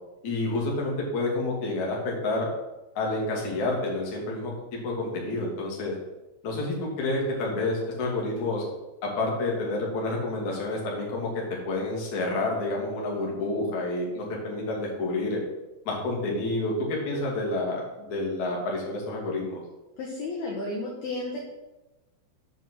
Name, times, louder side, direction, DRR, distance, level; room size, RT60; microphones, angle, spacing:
voice 1, 0.2-2.5 2.9-5.9 6.4-8.7 9.0-15.4 15.8-19.6, left 2 dB, 45° left, -2 dB, 3.2 m, -29 dB
voice 2, 20.0-21.4, left 2 dB, 60° left, -2 dB, 3.0 m, -32 dB
8.3 x 7.2 x 7.7 m, 1.0 s
omnidirectional pair, 5.9 m